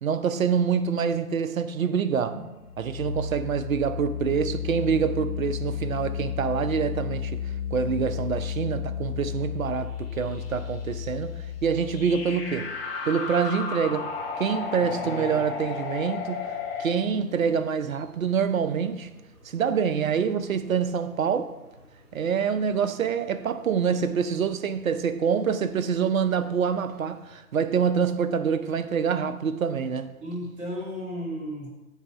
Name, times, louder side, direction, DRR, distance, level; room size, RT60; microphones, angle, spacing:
voice 1, 0.0-2.4 2.8-7.4 7.7-11.3 11.6-12.7 13.1-14.1 14.4-19.1 19.4-21.5 22.1-30.2, right 6 dB, 60° right, 0.6 m, -26 dB
sound 1, 2.3-16.9, left 7 dB, 40° left, 1.1 m, -33 dB
sound 2, 13.9-27.3, equal, 40° right, 2.4 m, -55 dB
voice 2, 14.8-15.4 23.9-24.0 30.2-31.7, equal, 15° right, 1.7 m, -35 dB
8.0 x 2.8 x 5.7 m
figure-of-eight pair, 125°, 45 cm